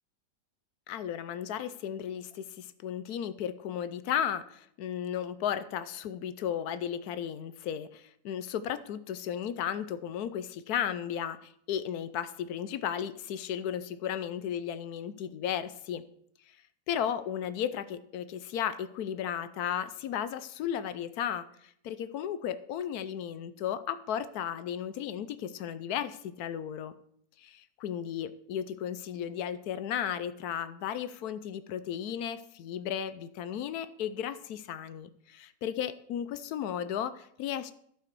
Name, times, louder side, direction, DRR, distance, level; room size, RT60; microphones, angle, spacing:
voice 1, 0.9-16.0 16.9-26.9 27.4-37.7, left 9 dB, 75° left, 14 dB, 1.1 m, -35 dB
11.5 x 6.9 x 4.6 m, 0.68 s
omnidirectional pair, 1.7 m